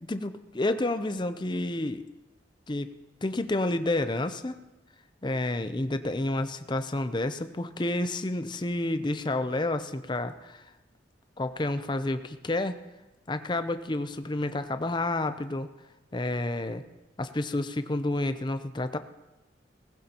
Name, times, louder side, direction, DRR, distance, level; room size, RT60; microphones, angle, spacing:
voice 1, 0.1-2.0 2.7-2.9 3.2-4.5 5.2-10.6 11.4-12.8 13.3-15.7 16.1-16.8 17.2-19.0, left 2 dB, 25° left, 10 dB, 0.6 m, -30 dB
18.5 x 15.5 x 2.9 m, 1.0 s
head